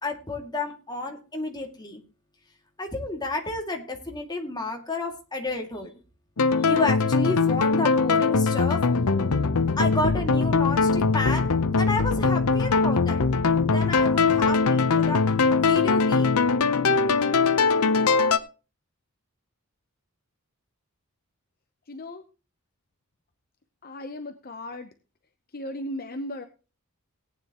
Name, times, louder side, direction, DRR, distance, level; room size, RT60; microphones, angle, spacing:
voice 1, 0.0-2.0 2.8-5.9 6.6-8.8 9.8-13.2 13.6-15.2 15.6-16.4, left 2 dB, 20° left, 2 dB, 2.3 m, -31 dB
Find Me In The Sky Synth Loop, 6.4-18.4, left 4 dB, 80° left, 0.8 m, -21 dB
voice 2, 21.9-22.2 23.8-24.9 25.5-26.4, left 1 dB, 40° left, 7 dB, 0.8 m, -36 dB
18.0 x 9.4 x 3.0 m, 0.33 s
head